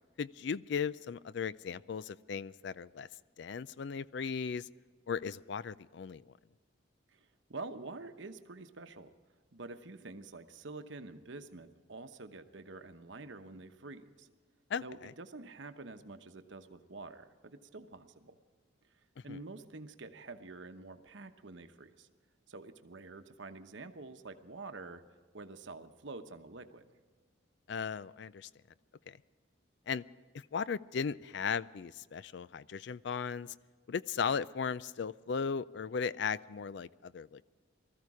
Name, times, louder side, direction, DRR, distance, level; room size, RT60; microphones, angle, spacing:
voice 1, 0.2-3.1 3.4-4.7 5.1-6.3 14.7-15.1 19.3-19.4 27.7-28.5 29.1-29.2 29.9-30.0 30.3-33.5 33.9-37.5, left 6 dB, 60° left, 18 dB, 0.4 m, -37 dB
voice 2, 7.1-9.1 9.5-14.3 14.8-18.4 19.2-22.1 22.5-25.0 25.3-26.9, right 3 dB, 70° right, 8 dB, 1.0 m, -47 dB
20.0 x 14.0 x 4.9 m, 1.5 s
head